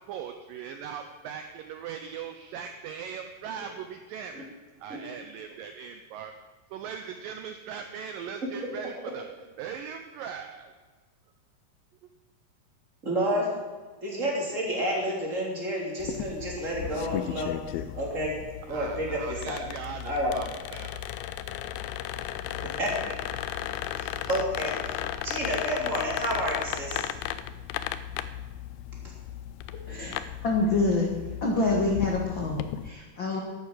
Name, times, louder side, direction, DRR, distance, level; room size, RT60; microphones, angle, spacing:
voice 1, 0.1-4.5 4.8-6.3 6.7-9.2 9.6-10.7 18.7-21.0, right 7 dB, 80° right, 6 dB, 2.0 m, -39 dB
voice 2, 13.0-13.5 14.0-18.4 18.7-19.6 20.0-20.4 22.8-23.1 23.9-25.0 25.2-27.0 29.0-29.1, equal, 20° right, -2 dB, 3.0 m, -30 dB
sound 1, 16.0-32.9, left 11 dB, 80° left, 2.1 m, -35 dB
voice 3, 30.4-31.1 31.4-33.4, left 3 dB, 65° left, 0 dB, 1.2 m, -26 dB
11.5 x 9.6 x 7.5 m, 1.4 s
omnidirectional pair, 4.8 m